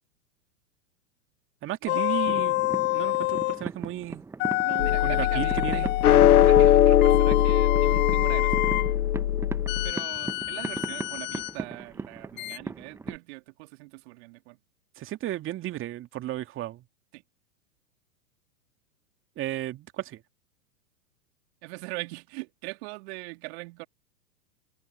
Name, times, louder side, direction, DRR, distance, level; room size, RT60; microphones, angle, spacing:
voice 1, 1.6-4.2 5.0-5.9 15.0-16.8 19.4-20.2, right 14 dB, 25° right, 2.4 m, -34 dB
sound 1, 1.9-3.6 4.4-6.3 7.0-8.9 9.7-11.5 12.4-12.6, left 20 dB, 25° left, 0.7 m, -28 dB
sound 2, 2.3-13.2, right 3 dB, 5° right, 0.8 m, -38 dB
voice 2, 4.6-8.6 9.8-14.6 17.1-17.2 21.6-23.9, right 27 dB, 45° right, 3.3 m, -41 dB
sound 3, 4.8-9.9, left 11 dB, 80° left, 0.5 m, -20 dB
figure-of-eight pair, 105°, 44 cm